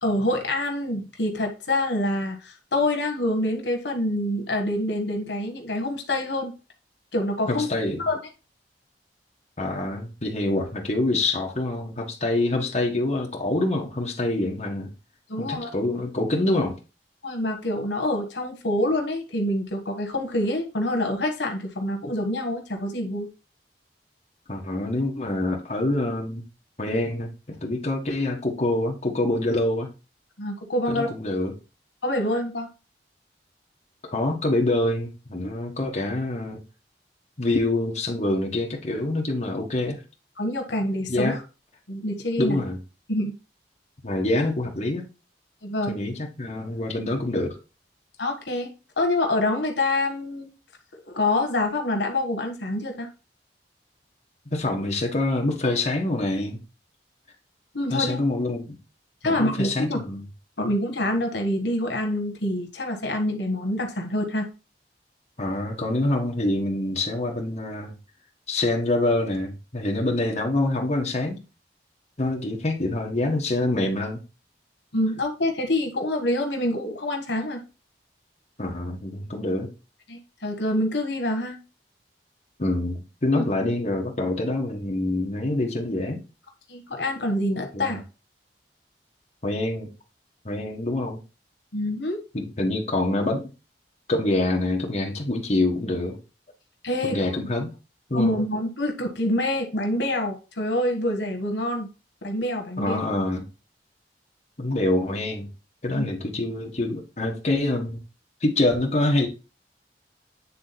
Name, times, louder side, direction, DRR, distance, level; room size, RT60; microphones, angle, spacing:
voice 1, 0.0-6.5 7.1-7.7 8.0-8.2 15.3-15.7 17.2-23.3 30.4-31.1 32.0-32.7 40.4-41.4 41.9-42.6 43.1-43.3 45.6-45.9 48.2-48.7 49.0-50.5 50.9-53.1 57.7-58.2 59.2-60.0 60.6-64.5 74.9-77.6 80.1-81.6 83.4-83.5 86.7-88.0 91.7-92.2 96.8-97.2 98.1-101.9 102.2-103.0 106.0-106.1, left 1 dB, 90° left, 1.4 m, -26 dB
voice 2, 7.5-8.0 9.6-14.9 15.4-16.8 24.5-26.4 26.8-29.9 30.9-31.5 34.0-36.6 37.4-40.0 41.1-41.4 42.4-42.8 44.0-45.0 45.9-47.6 54.5-56.6 57.9-58.8 59.2-60.2 65.4-67.9 68.5-71.4 72.2-74.2 78.6-79.7 82.6-86.2 87.7-87.9 89.4-89.9 90.4-91.2 92.3-93.5 94.1-96.2 97.0-97.7 98.1-98.4 102.8-103.4 104.6-105.5 105.8-108.0 108.4-109.3, left 2 dB, 40° left, 1.5 m, -26 dB
8.6 x 3.7 x 4.2 m
head